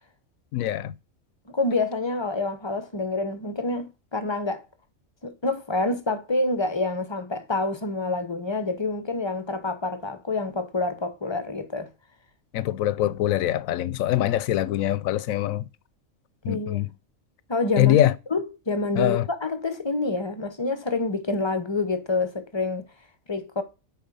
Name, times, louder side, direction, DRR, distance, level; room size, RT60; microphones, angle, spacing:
voice 1, 0.5-0.9 12.5-15.7 16.4-16.9 17.8-18.1 18.9-19.2, left 13 dB, 85° left, 1.0 m, -23 dB
voice 2, 1.5-4.6 5.2-11.9 16.5-16.8 17.5-18.0 18.3-22.9 23.3-23.6, left 2 dB, 25° left, 0.6 m, -27 dB
9.3 x 4.1 x 5.4 m
omnidirectional pair, 1.4 m